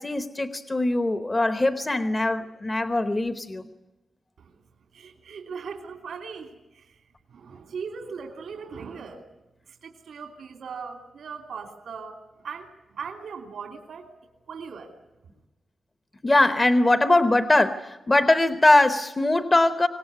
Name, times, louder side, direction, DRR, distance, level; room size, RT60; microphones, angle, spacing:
voice 1, 0.0-3.6 16.2-19.9, left 2 dB, 20° left, 9 dB, 0.9 m, -21 dB
voice 2, 4.9-7.0 7.3-9.2 9.7-14.1 14.5-15.0, right 5 dB, 90° right, 3 dB, 2.9 m, -39 dB
25.0 x 19.0 x 9.7 m, 1.0 s
wide cardioid pair, 170°, 0 cm